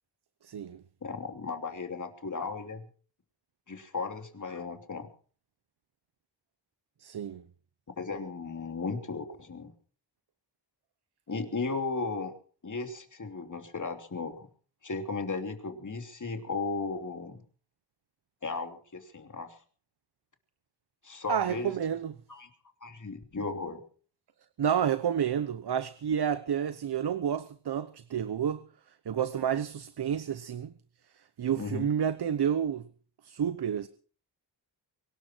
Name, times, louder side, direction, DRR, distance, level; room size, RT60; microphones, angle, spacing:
voice 1, 0.4-0.8 7.0-7.4 21.3-22.2 24.6-28.7 29.1-30.7 31.1-32.9 33.2-33.9, right 8 dB, 60° right, 0.9 m, -30 dB
voice 2, 1.0-2.8 3.7-5.1 8.0-9.7 11.3-12.3 12.6-14.5 14.8-17.4 18.4-19.6 21.0-21.7 22.3-22.5 22.8-23.8 31.6-31.9, left 4 dB, 40° left, 3.0 m, -35 dB
23.5 x 12.5 x 4.5 m
wide cardioid pair, 95°, 44 cm